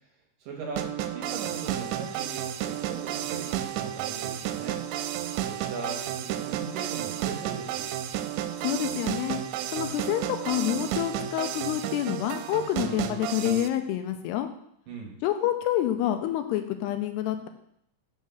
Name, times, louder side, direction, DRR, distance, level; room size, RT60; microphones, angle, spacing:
voice 1, 0.4-4.8 5.4-7.9 14.9-15.2, right 4 dB, 65° right, 1 dB, 2.4 m, -39 dB
sound 1, 0.8-13.7, right 11 dB, 85° right, 2.8 m, -32 dB
voice 2, 8.6-9.4 9.7-14.5 15.2-17.5, left 12 dB, 85° left, 7 dB, 2.6 m, -28 dB
6.5 x 6.4 x 6.9 m, 0.72 s
omnidirectional pair, 5.0 m